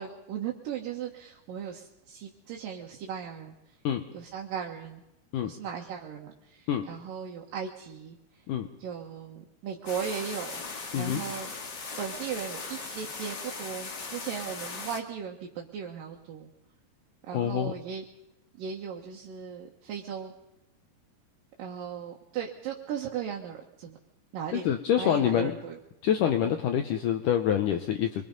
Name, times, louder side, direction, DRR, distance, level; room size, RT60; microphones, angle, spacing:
voice 1, 0.0-3.6 4.1-5.0 5.4-8.2 8.8-10.6 10.9-11.5 12.0-16.5 17.3-18.0 18.6-20.3 21.6-24.0 24.3-25.8 26.5-26.6, right 8 dB, 65° right, -1 dB, 2.6 m, -37 dB
sound 1, 9.9-15.0, left 4 dB, 50° left, 1.2 m, -39 dB
voice 2, 10.9-11.2 17.3-17.7 24.5-25.5 26.0-28.2, left 9 dB, 80° left, 6 dB, 1.9 m, -26 dB
25.5 x 21.5 x 5.4 m, 0.87 s
omnidirectional pair, 4.9 m